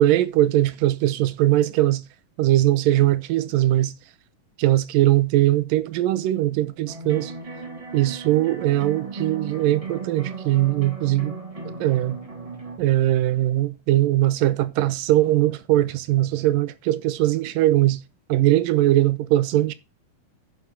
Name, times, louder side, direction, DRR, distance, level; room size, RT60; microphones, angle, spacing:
voice 1, 0.0-2.0 2.4-3.9 4.6-7.3 7.9-11.3 11.8-12.2 12.8-18.0 18.3-19.7, right 14 dB, 80° right, 2.4 m, -20 dB
sound 1, 6.9-12.8, right 4 dB, 15° right, 1.5 m, -36 dB
9.6 x 6.8 x 5.9 m
omnidirectional pair, 4.1 m